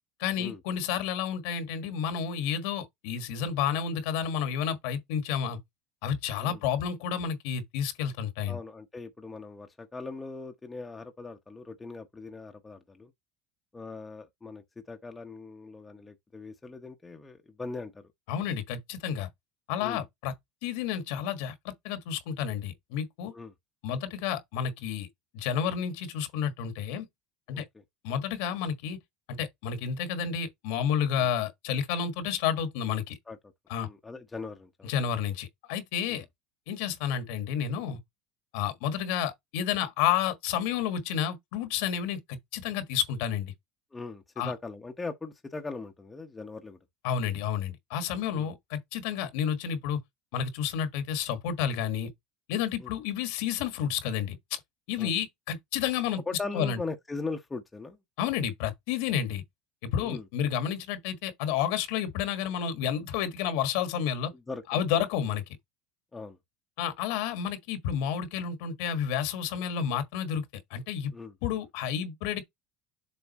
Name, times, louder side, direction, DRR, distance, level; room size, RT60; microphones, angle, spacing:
voice 1, 0.2-5.6 6.0-8.6 18.3-19.3 19.7-20.3 20.6-23.3 23.8-25.1 25.3-27.1 27.5-27.6 28.0-29.0 29.3-33.1 33.7-33.9 34.8-36.2 36.7-38.0 38.5-43.5 44.4-44.5 47.0-50.0 50.3-52.1 52.5-54.4 54.9-56.2 56.5-56.8 58.2-59.4 59.8-64.3 64.7-65.4 66.8-70.4 70.7-71.1 71.4-72.4, left 8 dB, 70° left, 1.5 m, -30 dB
voice 2, 8.5-13.1 13.7-18.0 19.8-20.0 23.3-23.5 27.5-27.6 31.2-31.3 33.3-33.4 33.8-34.9 36.1-36.2 43.9-46.8 48.3-48.5 52.8-52.9 55.0-55.2 56.3-58.0 60.0-60.3 64.3-64.8 66.1-66.4 71.1-71.3, left 3 dB, 10° left, 0.9 m, -40 dB
7.1 x 3.8 x 4.1 m
cardioid pair, 160°, 0 cm